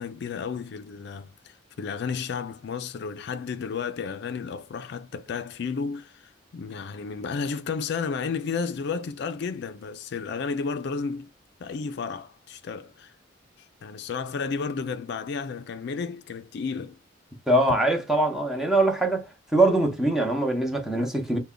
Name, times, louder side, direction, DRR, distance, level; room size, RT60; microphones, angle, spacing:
voice 1, 0.0-11.3 11.6-13.1 13.8-17.0, left 5 dB, 60° left, 0.4 m, -32 dB
voice 2, 17.5-19.2 19.5-21.4, right 2 dB, ahead, 0.7 m, -22 dB
3.3 x 2.1 x 3.7 m
head